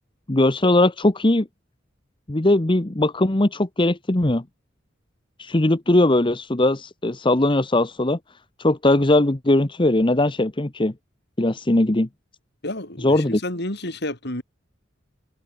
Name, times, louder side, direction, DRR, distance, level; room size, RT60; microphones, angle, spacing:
voice 1, 0.3-1.5 2.3-4.4 5.4-8.2 8.6-10.9 11.4-12.1 13.0-13.4, left 1 dB, 25° left, 1.0 m, -19 dB
voice 2, 12.6-14.4, left 1 dB, 60° left, 6.7 m, -30 dB
head